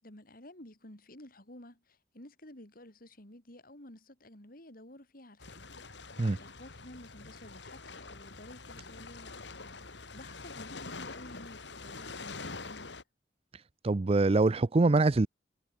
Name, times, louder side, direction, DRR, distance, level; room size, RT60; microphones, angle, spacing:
voice 1, 0.0-5.8 6.1-9.4 10.1-12.9, left 1 dB, 55° left, 5.1 m, -52 dB
sound 1, 5.4-13.0, left 3 dB, 85° left, 3.4 m, -45 dB
voice 2, 13.8-15.3, right 3 dB, 35° right, 0.5 m, -24 dB
head